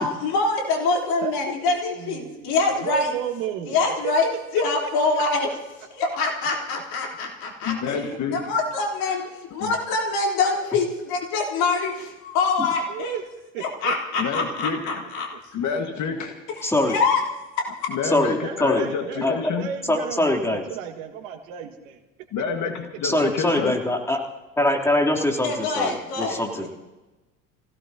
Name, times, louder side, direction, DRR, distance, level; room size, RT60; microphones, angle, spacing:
voice 1, 0.0-3.1 3.7-4.3 4.5-5.5 5.9-8.0 8.3-13.2 13.6-15.3 16.6-17.2 17.6-18.0 25.4-26.7, left 3 dB, 60° left, 0 dB, 3.8 m, -25 dB
voice 2, 2.0-4.1 5.1-5.6 11.6-12.2 12.9-13.2 13.5-13.9 14.4-14.5 15.3-15.4 18.4-22.0 26.5-26.7, right 9 dB, 65° right, 6 dB, 1.9 m, -34 dB
voice 3, 7.6-8.5 9.6-9.7 14.2-15.0 15.5-16.4 17.9-19.7 22.3-23.8, left 6 dB, 45° left, 5 dB, 1.7 m, -28 dB
voice 4, 16.6-17.0 18.0-18.9 19.2-19.3 19.9-20.6 23.0-24.2 24.6-26.7, left 1 dB, 5° left, 0 dB, 3.3 m, -23 dB
27.5 x 17.0 x 2.9 m, 1.1 s
figure-of-eight pair, 65°, 42 cm